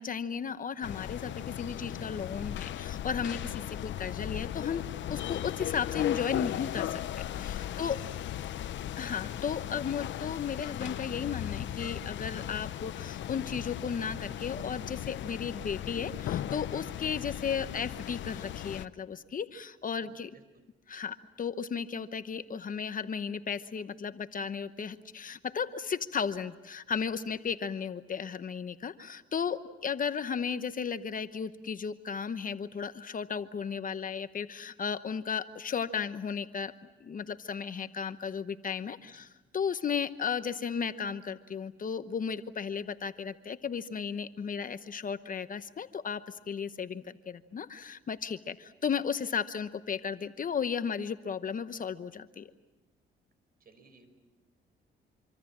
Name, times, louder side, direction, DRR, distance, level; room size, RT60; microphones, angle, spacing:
voice 1, 0.0-8.0 9.0-20.3 20.9-36.7 37.0-52.5, left 6 dB, 45° left, 11 dB, 1.0 m, -35 dB
sound 1, 0.8-18.9, left 12 dB, 70° left, 0.8 m, -37 dB
voice 2, 7.7-8.1 8.4-8.9 19.9-20.4 39.0-39.3 53.6-54.1, right 4 dB, 50° right, 10 dB, 5.6 m, -60 dB
26.5 x 25.5 x 7.5 m, 1.1 s
cardioid pair, 90°, 20 cm